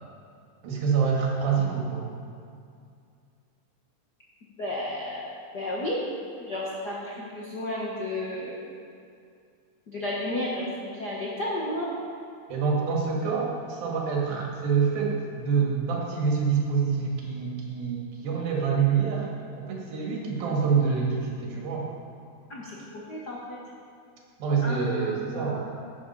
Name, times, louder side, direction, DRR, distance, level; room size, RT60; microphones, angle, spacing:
voice 1, 0.6-2.1 12.5-19.3 19.6-21.9 24.4-25.6, right 6 dB, 75° right, -2 dB, 3.6 m, -26 dB
voice 2, 4.6-6.0 6.4-8.6 9.9-11.9 20.1-20.2 22.5-23.6 24.6-25.6, left 1 dB, 60° left, -5 dB, 1.0 m, -33 dB
11.0 x 10.5 x 5.5 m, 2.4 s
omnidirectional pair, 4.3 m